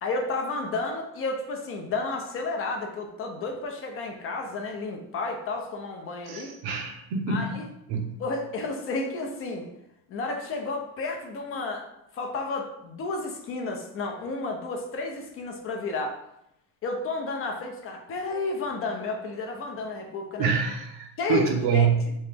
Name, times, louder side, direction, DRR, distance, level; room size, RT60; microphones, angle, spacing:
voice 1, 0.0-6.5 7.3-7.7 8.2-9.7 10.1-11.9 12.1-16.2 16.8-20.5 21.2-21.9, left 3 dB, 35° left, 3 dB, 0.5 m, -32 dB
voice 2, 6.3-7.5 7.9-8.1 20.4-22.1, right 6 dB, 85° right, 2 dB, 0.9 m, -26 dB
3.1 x 2.8 x 3.4 m, 0.82 s
cardioid pair, 150°, 39 cm